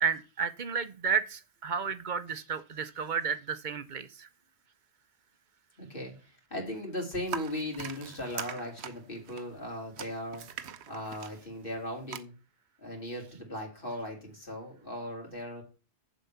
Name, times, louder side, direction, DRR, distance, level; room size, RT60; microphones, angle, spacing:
voice 1, 0.0-4.3, right 6 dB, 50° right, 0.8 m, -32 dB
voice 2, 5.8-10.5 10.9-12.3 12.8-15.6, left 1 dB, 50° left, 3.0 m, -38 dB
sound 1, 7.3-12.2, right 8 dB, 70° right, 1.0 m, -42 dB
7.5 x 5.2 x 7.0 m
omnidirectional pair, 1.2 m